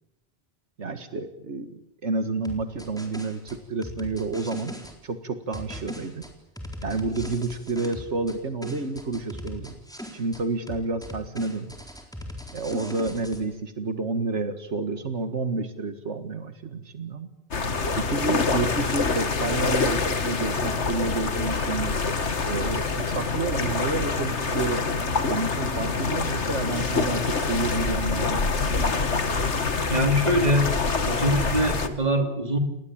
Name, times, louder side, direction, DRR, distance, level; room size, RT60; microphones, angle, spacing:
voice 1, 0.8-4.8 5.0-6.3 6.8-9.8 10.1-11.8 12.5-17.3 18.0-22.0 22.5-24.9 25.3-28.5, right 3 dB, 85° right, 9 dB, 2.0 m, -30 dB
sound 1, 2.4-4.9 5.5-8.4 8.6-10.4 10.7-13.4, left 1 dB, 5° left, 4.1 m, -39 dB
sound 2, 17.5-31.9, left 4 dB, 85° left, 2.1 m, -26 dB
voice 2, 29.9-30.7 31.0-32.6, equal, 35° right, 6 dB, 3.0 m, -23 dB
29.0 x 19.5 x 8.8 m, 0.87 s
omnidirectional pair, 1.2 m